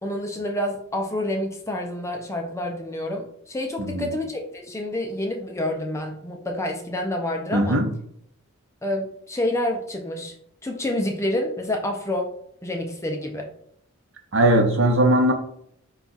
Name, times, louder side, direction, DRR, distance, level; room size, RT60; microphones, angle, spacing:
voice 1, 0.0-7.8 8.8-10.3 10.6-12.3 12.6-13.5, left 1 dB, 15° left, 2 dB, 0.4 m, -28 dB
voice 2, 3.8-4.1 7.5-7.9 14.3-15.3, right 1 dB, 55° right, 4 dB, 0.7 m, -19 dB
4.6 x 2.3 x 4.0 m, 0.68 s
head